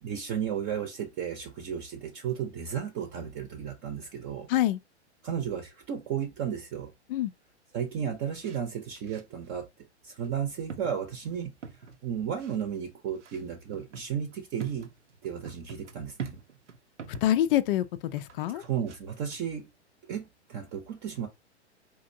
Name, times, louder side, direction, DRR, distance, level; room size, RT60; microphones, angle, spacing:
voice 1, 0.0-4.5 5.2-6.9 7.7-9.7 10.0-11.5 12.0-14.9 15.2-16.4 18.5-19.7 20.1-21.3, right 8 dB, 30° right, 0.7 m, -34 dB
sound 1, 8.4-8.6 9.0-9.5 10.2-10.3 10.7-12.0 12.4-12.6 13.2-17.3 18.2-19.0 19.3-19.4, right 6 dB, 90° right, 0.7 m, -44 dB
voice 2, 17.2-18.6, left 13 dB, 50° left, 0.4 m, -26 dB
4.3 x 2.6 x 2.6 m
hypercardioid pair, 115°, 35 cm